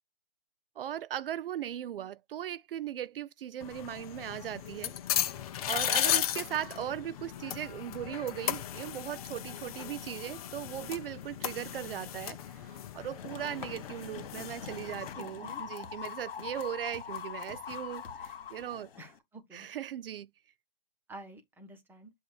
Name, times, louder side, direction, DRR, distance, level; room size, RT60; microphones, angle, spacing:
voice 1, 0.8-5.3 5.7-18.9 19.5-20.3, right 11 dB, 65° right, 0.4 m, -38 dB
sound 1, 3.6-15.1, left 11 dB, 40° left, 0.9 m, -36 dB
sound 2, 13.2-19.2, left 8 dB, 70° left, 1.9 m, -43 dB
voice 2, 15.2-15.6 19.0-19.7 21.1-22.1, right 1 dB, 5° right, 1.3 m, -49 dB
7.9 x 2.8 x 4.7 m
hypercardioid pair, 140°, 30 cm